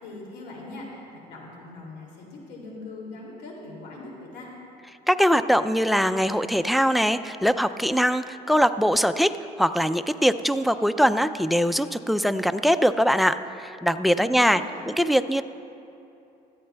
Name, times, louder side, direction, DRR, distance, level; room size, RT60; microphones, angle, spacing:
voice 1, 0.0-4.5 14.1-14.8, left 2 dB, 80° left, -2 dB, 2.5 m, -41 dB
voice 2, 5.1-9.3 9.6-14.6 14.9-15.4, equal, ahead, 12 dB, 0.3 m, -22 dB
18.0 x 13.5 x 2.2 m, 2.8 s
cardioid pair, 110°, 17 cm